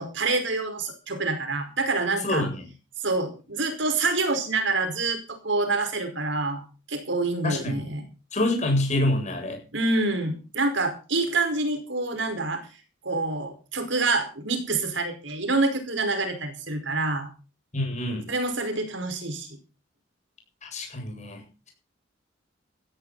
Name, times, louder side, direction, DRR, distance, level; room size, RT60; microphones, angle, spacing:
voice 1, 0.0-2.5 3.0-8.0 9.7-12.7 13.0-17.3 18.3-19.6, right 3 dB, 75° right, 7 dB, 5.2 m, -27 dB
voice 2, 7.4-7.8 8.3-9.6 17.7-18.3 20.6-21.4, left 1 dB, 40° left, 2 dB, 7.9 m, -26 dB
16.0 x 15.0 x 4.2 m, 0.34 s
head